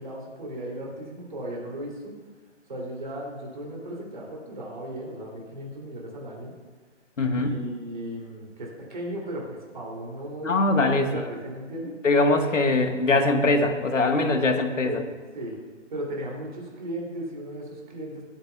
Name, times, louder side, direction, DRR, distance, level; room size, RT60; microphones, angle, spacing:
voice 1, 0.0-2.1 2.7-6.5 7.3-11.9 14.8-15.0 15.3-15.5 15.9-18.2, right 1 dB, 40° right, -2 dB, 2.8 m, -36 dB
voice 2, 7.2-7.5 10.4-11.1 12.0-15.0, left 2 dB, 80° left, 5 dB, 1.5 m, -22 dB
19.0 x 8.9 x 2.3 m, 1.4 s
hypercardioid pair, 180°, 37 cm